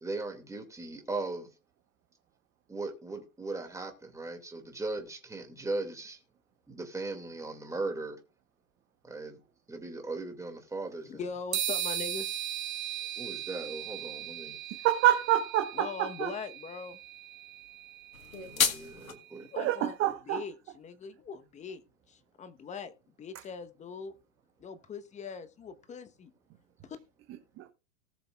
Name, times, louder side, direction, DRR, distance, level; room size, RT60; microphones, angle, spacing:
voice 1, 0.0-1.5 2.7-6.2 6.7-8.2 9.0-9.4 9.7-11.2 13.2-14.6 18.4-19.5, right 2 dB, 10° right, 2.3 m, -38 dB
voice 2, 11.0-12.4 15.7-17.0 19.4-22.9 23.2-24.1 24.6-26.3 26.8-27.0, left 5 dB, 15° left, 1.1 m, -41 dB
sound 1, 11.5-19.2, right 10 dB, 85° right, 1.6 m, -38 dB
voice 3, 14.8-16.3 19.6-20.4 27.6-27.7, right 12 dB, 30° right, 1.3 m, -27 dB
sound 2, 18.1-19.1, left 6 dB, 85° left, 1.5 m, -30 dB
18.5 x 6.8 x 2.4 m
hypercardioid pair, 110°, 40 cm